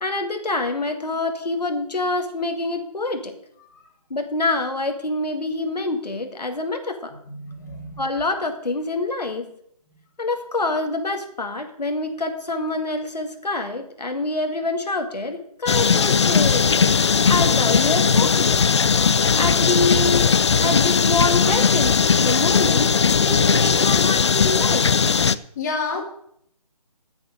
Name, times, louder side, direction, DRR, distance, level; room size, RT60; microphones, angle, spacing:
voice 1, 0.0-3.4 4.1-7.1 8.0-9.5 10.2-18.6 19.4-20.3 20.6-24.9, left 2 dB, 85° left, 6 dB, 2.0 m, -26 dB
voice 2, 7.3-8.0 25.6-26.0, left 3 dB, 25° left, 2 dB, 2.2 m, -30 dB
sound 1, 15.7-25.3, left 6 dB, 45° left, 0.5 m, -18 dB
10.0 x 8.4 x 6.4 m, 0.69 s
figure-of-eight pair, 160°, 20 cm